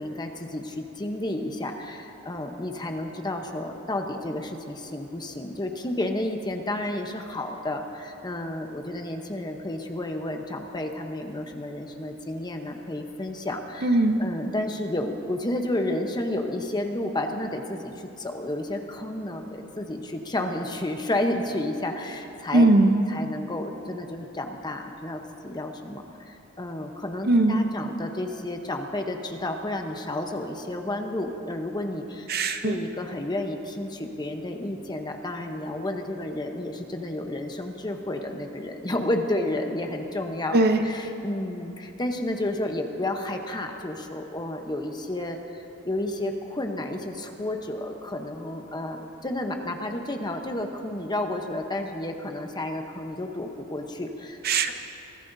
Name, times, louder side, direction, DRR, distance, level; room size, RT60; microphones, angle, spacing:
voice 1, 0.0-22.7 23.1-32.3 32.6-40.6 40.8-54.4, left 1 dB, 20° left, 4 dB, 0.9 m, -31 dB
voice 2, 13.8-14.2 22.5-23.0 27.2-27.6 32.3-32.8 40.5-40.9 54.4-54.7, right 2 dB, 50° right, 7 dB, 0.7 m, -20 dB
23.0 x 15.0 x 2.7 m, 2.9 s
head